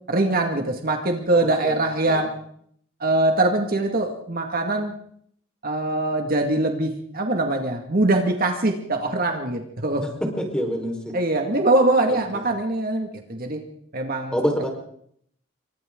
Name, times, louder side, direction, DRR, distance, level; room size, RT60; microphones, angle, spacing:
voice 1, 0.1-2.3 3.0-4.9 5.6-10.0 11.1-13.6 13.9-14.4, right 2 dB, 45° right, 3 dB, 2.1 m, -22 dB
voice 2, 1.3-1.8 2.0-2.2 10.4-11.1 12.1-12.4 14.3-14.7, equal, 5° left, 2 dB, 4.5 m, -27 dB
28.5 x 24.0 x 3.9 m, 0.67 s
head